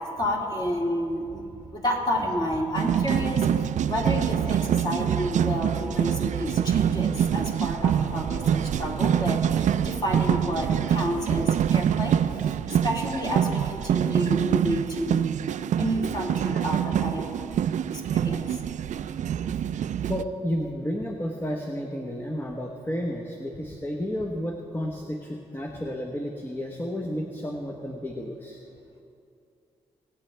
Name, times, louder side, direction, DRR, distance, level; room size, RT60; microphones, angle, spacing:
voice 1, 0.2-1.4 1.7-15.2 15.8-17.2 17.8-18.6, equal, 30° left, -2 dB, 2.7 m, -30 dB
sound 1, 2.7-20.2, right 9 dB, 65° right, 0.4 m, -25 dB
voice 2, 20.1-28.6, equal, 15° left, 0 dB, 1.0 m, -32 dB
19.0 x 8.5 x 3.4 m, 2.6 s
cardioid pair, 70°, 14 cm